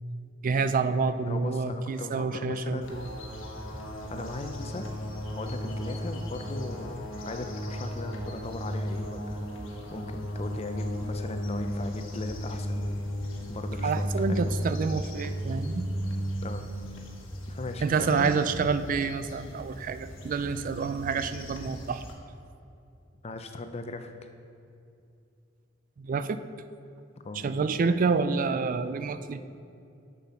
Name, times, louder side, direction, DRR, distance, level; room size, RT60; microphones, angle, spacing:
voice 1, 0.4-3.1 13.8-15.8 17.8-22.0 26.0-26.4 27.4-29.4, right 4 dB, 45° right, 11 dB, 0.3 m, -28 dB
voice 2, 1.3-3.0 4.1-4.9 5.3-9.4 9.9-12.9 13.5-14.7 16.4-16.7 17.5-18.3 23.2-24.1 27.2-27.5, left 2 dB, 30° left, 7 dB, 0.6 m, -38 dB
sound 1, 2.8-22.1, equal, 85° left, 1.4 m, -35 dB
7.6 x 7.2 x 5.6 m, 2.6 s
head